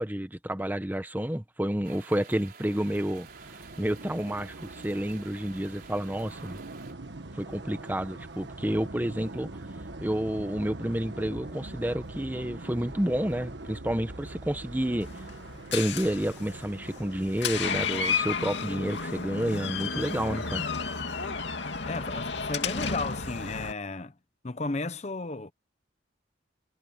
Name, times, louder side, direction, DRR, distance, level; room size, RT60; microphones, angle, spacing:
voice 1, 0.0-3.3 3.5-6.6 7.3-9.5 10.0-15.1 15.7-20.6, right 1 dB, 10° right, 0.8 m, -30 dB
sound 1, 1.8-6.9, right 6 dB, 50° right, 4.1 m, -51 dB
sound 2, 2.7-17.8, right 2 dB, 70° right, 1.5 m, -42 dB
Door, 15.0-23.7, left 5 dB, 70° left, 2.5 m, -32 dB
voice 2, 21.9-24.1 24.4-25.5, left 3 dB, 35° left, 0.8 m, -34 dB
head